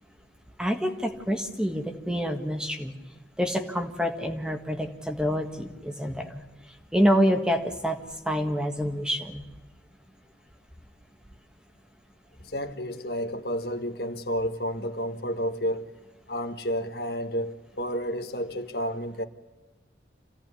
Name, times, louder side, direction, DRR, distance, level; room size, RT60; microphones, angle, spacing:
voice 1, 0.6-2.9 3.4-6.4 6.9-8.0 8.2-9.4, equal, 5° right, 1.6 m, -27 dB
voice 2, 12.4-15.9 16.3-19.2, equal, 60° left, 1.6 m, -31 dB
27.0 x 16.5 x 9.9 m
head